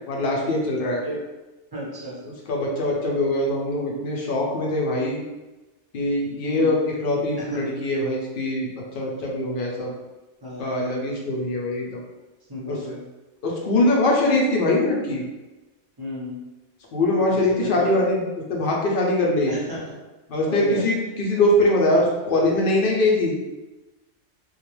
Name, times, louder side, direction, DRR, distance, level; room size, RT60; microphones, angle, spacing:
voice 1, 0.1-1.0 2.3-5.2 5.9-8.7 8.9-9.9 10.6-12.0 12.7-12.8 13.4-15.2 16.9-18.2 18.5-19.5 20.3-23.3, left 1 dB, 55° left, -2 dB, 0.7 m, -22 dB
voice 2, 1.7-2.2 6.5-6.8 7.4-7.7 10.4-11.1 12.5-13.1 16.0-16.4 17.3-18.0 19.5-19.8 20.4-20.8, equal, 25° right, -6 dB, 0.7 m, -33 dB
2.4 x 2.2 x 3.0 m, 1.1 s
omnidirectional pair, 1.2 m